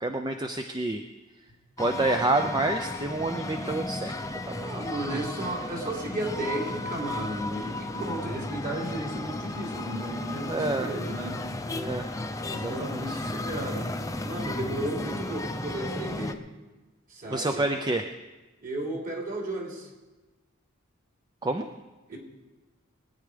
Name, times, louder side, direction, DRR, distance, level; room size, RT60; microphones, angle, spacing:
voice 1, 0.0-1.0 1.8-4.2 4.5-4.7 5.1-5.2 10.5-10.9 11.7-12.1 12.5-13.2 17.3-18.0 21.4-21.6, right 2 dB, 20° right, 5 dB, 0.6 m, -28 dB
sound 1, 1.8-16.3, left 2 dB, 15° left, 0.7 m, -34 dB
voice 2, 4.6-11.4 12.1-12.3 12.5-13.9 14.2-16.4 17.1-17.6 18.6-19.9 22.1-22.2, right 1 dB, 40° right, -1 dB, 3.3 m, -34 dB
21.0 x 9.5 x 5.1 m, 1.2 s
head